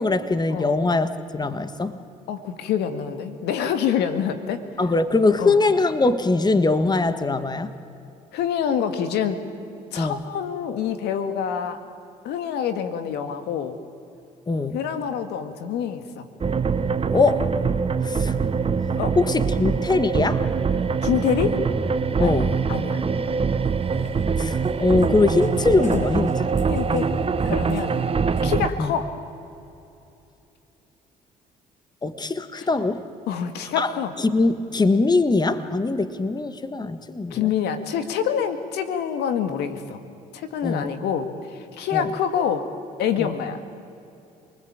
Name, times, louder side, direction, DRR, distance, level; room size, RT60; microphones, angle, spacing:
voice 1, 0.0-2.0 4.8-7.7 10.0-10.2 14.5-14.8 17.1-17.5 18.0-18.4 19.1-20.5 22.2-22.5 24.4-26.5 28.8-28.9 32.0-33.0 33.8-33.9 34.2-37.5 40.6-40.9 41.9-42.1 43.2-43.3, left 3 dB, 25° left, 11 dB, 1.7 m, -22 dB
voice 2, 2.3-4.6 5.4-5.6 8.3-9.5 9.9-11.8 12.2-13.8 14.7-16.2 19.0-19.2 21.0-21.6 22.2-22.4 22.7-23.0 25.9-26.0 26.7-27.1 27.4-28.0 28.4-29.2 32.6-32.7 33.3-34.1 37.3-40.0 40.3-42.6 43.0-43.6, left 8 dB, 80° left, 9 dB, 2.0 m, -26 dB
sound 1, 16.4-28.7, right 5 dB, 35° right, 1.2 m, -23 dB
Cat, 23.5-28.6, left 2 dB, 45° left, 6.6 m, -37 dB
27.5 x 20.5 x 8.9 m, 2.7 s
supercardioid pair, 65°, 17 cm